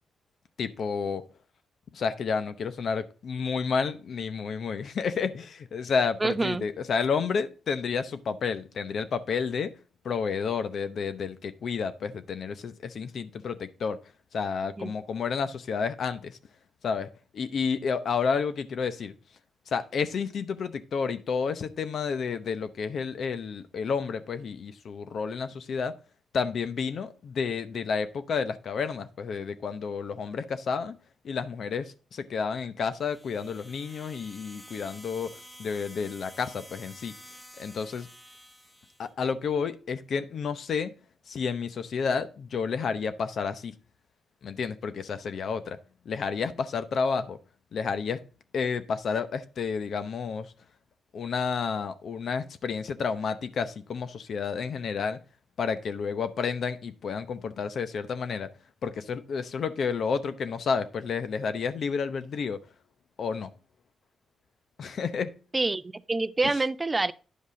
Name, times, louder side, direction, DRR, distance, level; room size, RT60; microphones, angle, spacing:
voice 1, 0.6-1.2 1.9-9.7 10.0-14.0 14.3-16.4 16.8-19.1 19.7-25.9 26.3-31.0 31.2-35.3 35.6-37.1 37.6-38.1 39.0-40.9 41.3-43.7 44.4-45.8 46.1-47.4 47.7-48.2 48.5-50.5 51.1-55.2 55.6-58.5 58.8-62.6 63.2-63.5 64.8-65.3 66.4-66.6, left 5 dB, 65° left, 0.7 m, -30 dB
voice 2, 6.2-6.6 14.8-14.9 65.5-67.1, right 3 dB, 25° right, 0.5 m, -27 dB
sound 1, 32.9-39.1, equal, 10° left, 1.7 m, -50 dB
9.9 x 5.3 x 3.8 m
cardioid pair, 80°, 0 cm